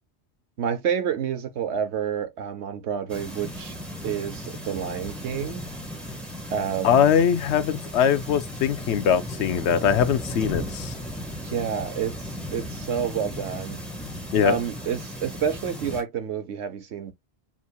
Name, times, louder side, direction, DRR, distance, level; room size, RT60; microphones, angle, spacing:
voice 1, 0.6-3.8 4.0-5.6 6.5-7.1 11.4-13.8 14.4-17.1, right 8 dB, 90° right, 1.2 m, -29 dB
sound 1, 3.1-16.0, equal, ahead, 1.4 m, -36 dB
voice 2, 6.8-10.9 14.3-14.6, left 8 dB, 80° left, 1.0 m, -21 dB
7.3 x 2.7 x 2.2 m
omnidirectional pair, 1.1 m